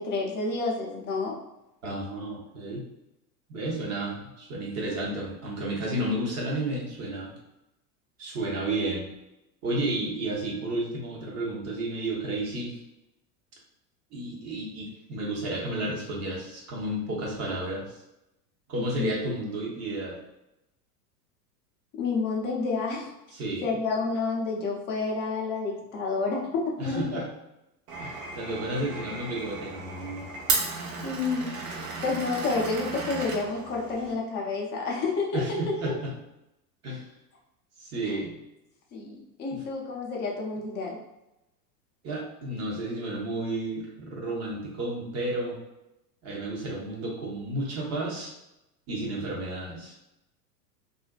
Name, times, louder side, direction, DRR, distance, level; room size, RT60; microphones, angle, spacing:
voice 1, 0.0-1.4 19.0-19.1 22.0-23.1 23.6-27.2 31.0-31.8 32.0-35.6 35.8-35.9 38.0-38.2 38.9-41.0, left 4 dB, 25° left, -1 dB, 0.5 m, -29 dB
voice 2, 1.8-2.9 3.5-7.3 8.2-9.1 9.6-12.8 14.1-18.0 18.7-20.2 23.3-23.7 26.8-27.3 28.0-30.3 35.3-36.1 36.8-37.1 37.8-38.4 39.5-39.6 42.0-45.6 46.2-48.3 48.9-49.9, right 1 dB, 30° right, -2 dB, 0.7 m, -32 dB
Glass, 27.9-34.1, right 3 dB, 70° right, 0.8 m, -34 dB
2.5 x 2.1 x 2.3 m, 0.90 s
hypercardioid pair, 95°, 50 cm